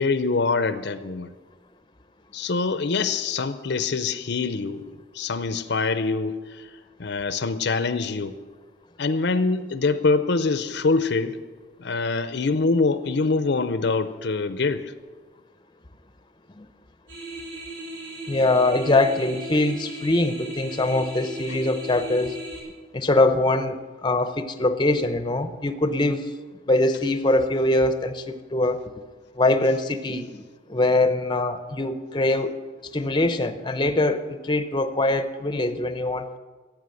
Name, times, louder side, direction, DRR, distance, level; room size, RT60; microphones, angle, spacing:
voice 1, 0.0-1.3 2.3-4.9 5.1-6.6 7.0-8.4 9.0-11.4 11.8-14.9, left 4 dB, 60° left, 0.6 m, -24 dB
sound 1, 17.1-22.6, right 1 dB, 80° right, 4.1 m, -37 dB
voice 2, 18.3-22.4 22.9-26.3 26.7-28.8 29.4-30.3 30.7-32.6 32.9-36.4, left 2 dB, 25° left, 0.7 m, -23 dB
14.5 x 9.0 x 7.7 m
head